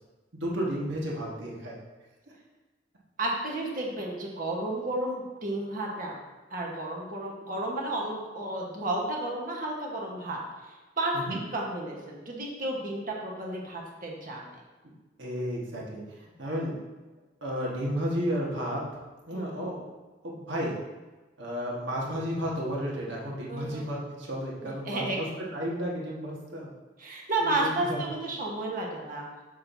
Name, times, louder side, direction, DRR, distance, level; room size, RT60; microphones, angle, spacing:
voice 1, 0.3-1.8 11.1-11.4 15.2-16.7 17.4-18.8 19.3-19.9 20.2-20.7 21.4-26.7 27.4-28.0, equal, 75° right, -4 dB, 1.5 m, -32 dB
voice 2, 3.2-6.1 6.5-11.2 11.5-14.5 19.3-19.7 23.5-23.8 24.6-25.2 27.0-29.3, right 2 dB, 45° right, -2 dB, 1.2 m, -32 dB
6.6 x 5.9 x 2.7 m, 1.2 s
head